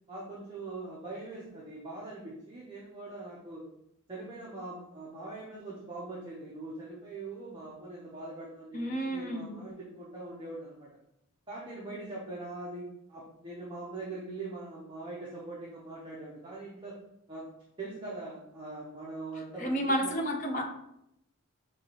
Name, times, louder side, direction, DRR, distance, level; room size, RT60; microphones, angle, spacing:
voice 1, 0.1-3.6 4.1-10.9 11.5-16.9 17.3-17.4 17.8-20.1, right 2 dB, 20° right, -6 dB, 0.9 m, -42 dB
voice 2, 8.7-9.6 19.6-20.6, equal, 35° left, 1 dB, 0.7 m, -31 dB
6.0 x 2.9 x 3.0 m, 0.80 s
head